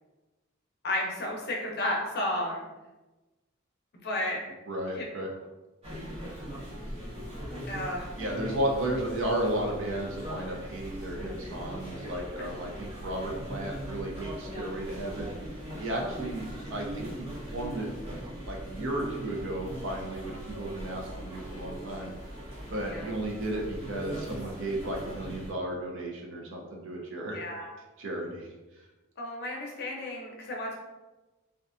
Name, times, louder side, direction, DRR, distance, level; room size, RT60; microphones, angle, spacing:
voice 1, 0.8-2.6 4.0-4.4 5.0-5.1 7.7-8.1 22.8-23.1 27.3-27.7 29.2-30.7, left 1 dB, 50° left, -1 dB, 0.5 m, -32 dB
voice 2, 4.7-5.3 8.2-15.3 15.8-17.2 17.5-17.9 18.4-22.1 22.7-27.4 28.0-28.5, right 1 dB, 60° right, 0 dB, 0.5 m, -34 dB
sound 1, 5.8-25.5, equal, 30° right, 0.9 m, -40 dB
2.5 x 2.3 x 2.4 m, 1.1 s
head